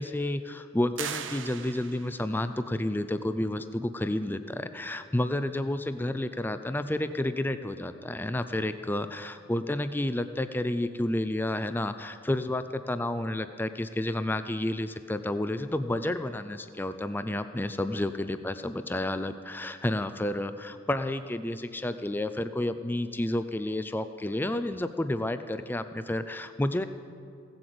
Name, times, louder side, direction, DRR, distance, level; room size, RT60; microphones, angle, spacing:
voice 1, 0.0-26.9, left 1 dB, 10° left, 11 dB, 0.4 m, -30 dB
sound 1, 1.0-2.3, right 8 dB, 65° right, 0.7 m, -38 dB
16.5 x 7.9 x 7.8 m, 2.4 s
head